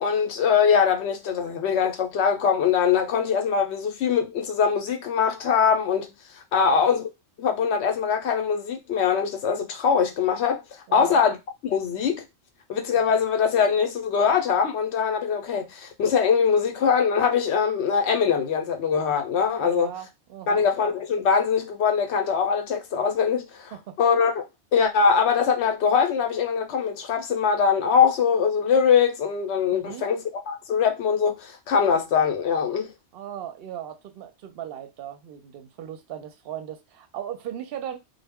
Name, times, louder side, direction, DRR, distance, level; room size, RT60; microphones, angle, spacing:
voice 1, 0.0-7.1 7.4-10.6 10.9-11.4 11.6-12.2 12.7-19.9 20.5-23.7 24.0-24.4 24.7-32.9, left 6 dB, 75° left, 0.9 m, -22 dB
voice 2, 6.6-6.9 10.9-11.2 19.6-20.7 23.7-24.0 29.7-30.1 33.1-38.0, right 10 dB, 65° right, 0.7 m, -37 dB
2.1 x 2.1 x 3.4 m
omnidirectional pair, 1.2 m